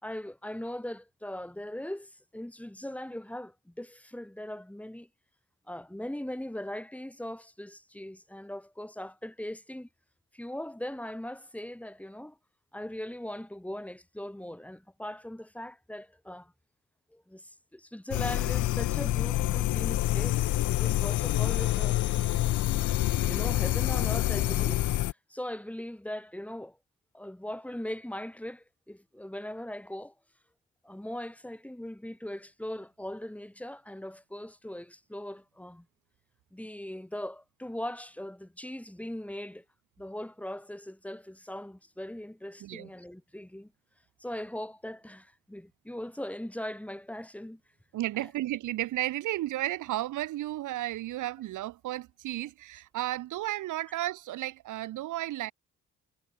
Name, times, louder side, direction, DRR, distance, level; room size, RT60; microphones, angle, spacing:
voice 1, 0.0-5.1 5.7-9.9 10.3-12.4 12.7-16.5 17.1-22.0 23.2-26.8 27.1-30.1 30.8-35.9 36.5-39.6 40.0-43.7 44.2-47.6 48.2-48.3, left 1 dB, 5° left, 4.6 m, -40 dB
sound 1, 18.1-25.1, left 14 dB, 80° left, 1.3 m, -27 dB
voice 2, 47.9-55.5, right 15 dB, 85° right, 1.6 m, -33 dB
cardioid pair, 90°, 30 cm